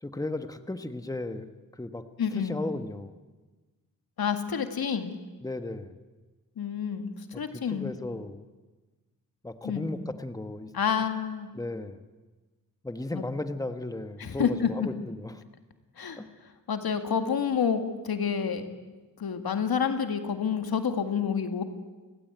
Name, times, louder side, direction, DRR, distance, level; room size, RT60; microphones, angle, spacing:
voice 1, 0.0-2.0 2.3-3.2 5.4-6.0 7.3-8.5 9.4-10.7 11.5-12.0 12.8-15.4 16.2-16.3, left 2 dB, 10° left, 8 dB, 1.3 m, -35 dB
voice 2, 2.2-2.6 4.2-5.1 6.6-7.1 7.4-7.9 9.6-9.9 10.7-11.5 13.1-13.2 14.2-14.9 16.0-16.2 16.7-18.7 19.2-21.6, left 7 dB, 85° left, 7 dB, 2.1 m, -28 dB
30.0 x 17.0 x 9.3 m, 1.3 s
wide cardioid pair, 100°, 36 cm